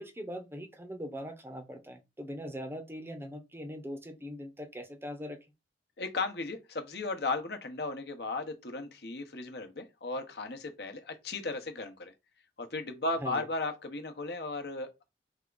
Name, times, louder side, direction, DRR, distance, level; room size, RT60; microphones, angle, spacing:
voice 1, 0.0-5.4 13.2-13.4, equal, 15° right, 0.7 m, -41 dB
voice 2, 6.0-12.1 12.6-15.0, left 3 dB, 65° left, 0.9 m, -36 dB
3.6 x 3.4 x 3.8 m
head